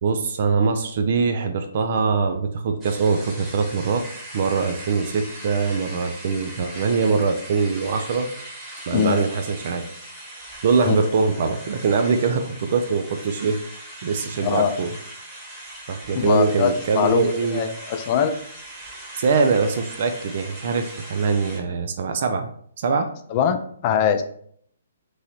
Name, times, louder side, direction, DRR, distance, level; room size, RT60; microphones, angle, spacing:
voice 1, 0.0-4.0 4.3-8.3 8.9-9.8 10.6-13.6 14.0-14.9 15.9-17.6 19.1-22.5 22.8-23.1, right 5 dB, 50° right, 6 dB, 0.4 m, -22 dB
sound 1, 2.8-21.6, right 1 dB, 20° right, 1.1 m, -40 dB
voice 2, 14.4-14.7 16.1-18.4 23.3-24.2, left 8 dB, 35° left, 8 dB, 0.4 m, -22 dB
3.1 x 2.7 x 4.2 m, 0.63 s
figure-of-eight pair, 130°, 0 cm